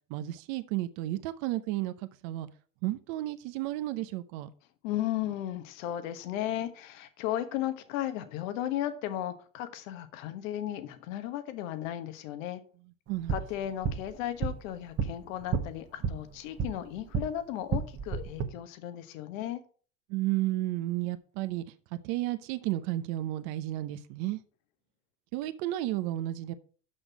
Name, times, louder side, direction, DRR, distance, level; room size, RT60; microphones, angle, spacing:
voice 1, 0.1-1.9 2.2-2.5 2.8-4.5 13.1-13.3 20.1-21.6 22.0-24.4 25.3-26.5, right 15 dB, 70° right, 0.8 m, -32 dB
voice 2, 4.8-12.6 13.3-19.6, left 12 dB, 85° left, 1.2 m, -35 dB
sound 1, 13.1-17.3 17.6-18.5, right 6 dB, 40° right, 1.3 m, -33 dB
6.2 x 6.1 x 5.9 m
supercardioid pair, 110°, 39 cm